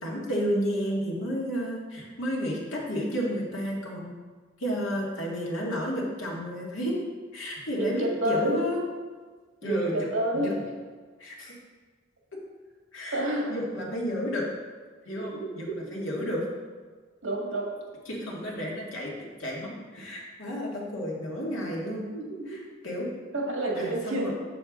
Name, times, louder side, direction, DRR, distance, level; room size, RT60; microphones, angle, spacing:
voice 1, 0.0-4.1 4.6-6.9 7.3-8.8 9.6-10.1 10.3-10.5 11.2-11.6 12.9-13.2 13.5-14.5 15.1-16.4 18.1-19.1 19.4-22.0 22.5-23.1 23.7-24.3, equal, 70° left, -4 dB, 2.0 m, -31 dB
voice 2, 7.7-8.6 9.6-10.5 13.1-13.5 15.1-15.7 17.2-17.7 22.1-22.4 23.3-24.3, right 1 dB, 80° right, -2 dB, 2.1 m, -29 dB
7.8 x 6.9 x 3.8 m, 1.5 s
head